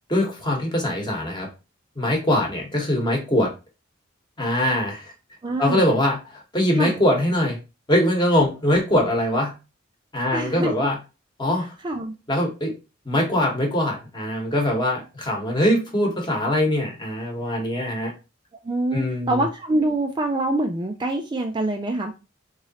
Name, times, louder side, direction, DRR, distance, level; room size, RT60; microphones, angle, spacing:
voice 1, 0.1-1.5 2.0-3.5 4.4-5.1 5.6-7.6 7.9-9.5 10.1-11.0 11.4-11.7 12.3-12.7 13.0-18.1 18.9-19.4, left 1 dB, 25° left, 1 dB, 1.1 m, -22 dB
voice 2, 5.4-6.0 6.7-7.0 10.3-10.7 11.8-12.1 18.6-22.1, right 2 dB, 25° right, 4 dB, 0.3 m, -25 dB
3.7 x 3.1 x 2.8 m, 0.29 s
head